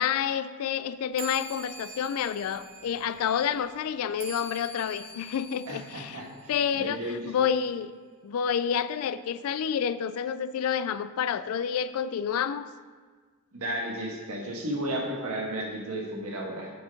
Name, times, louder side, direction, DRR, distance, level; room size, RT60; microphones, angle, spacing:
voice 1, 0.0-6.2 6.5-7.9 8.2-12.7, left 8 dB, 70° left, 15 dB, 0.3 m, -29 dB
sound 1, 1.1-7.0, right 2 dB, 65° right, 1.4 m, -45 dB
voice 2, 5.7-7.2 13.5-16.7, right 1 dB, 80° right, -1 dB, 1.4 m, -33 dB
8.4 x 4.4 x 5.2 m, 1.5 s
head